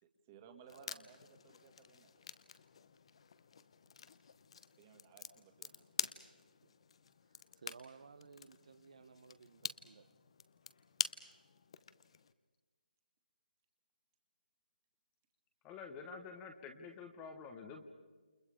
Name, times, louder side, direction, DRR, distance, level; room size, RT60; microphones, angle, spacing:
voice 1, 0.0-2.2 4.8-5.9, right 6 dB, 15° right, 1.9 m, -60 dB
sound 1, 0.7-12.3, left 6 dB, 35° left, 0.9 m, -47 dB
voice 2, 7.6-10.1, right 5 dB, 45° right, 0.9 m, -57 dB
voice 3, 15.6-17.9, left 5 dB, 10° left, 1.0 m, -49 dB
29.0 x 29.0 x 5.0 m
hypercardioid pair, 170°, 5 cm